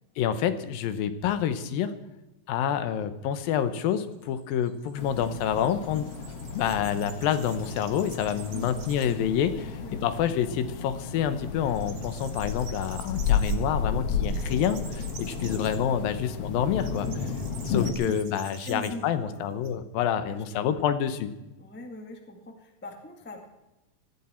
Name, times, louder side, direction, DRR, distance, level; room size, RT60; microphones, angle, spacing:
voice 1, 0.2-1.9 2.5-6.1 6.5-9.7 10.0-17.1 17.7-21.3, left 9 dB, 80° left, 11 dB, 2.7 m, -28 dB
sound 1, 3.5-9.3 9.7-9.8 10.2-11.0 11.2-19.7, right 6 dB, 55° right, 2.7 m, -49 dB
sound 2, 5.0-17.9, left 6 dB, 55° left, 2.0 m, -32 dB
voice 2, 8.5-9.2 9.5-10.0 17.0-17.2 17.8-18.2 18.6-19.4 20.0-20.9 21.6-23.5, left 1 dB, 5° left, 3 dB, 0.8 m, -42 dB
18.5 x 14.0 x 4.5 m, 1.0 s
omnidirectional pair, 4.1 m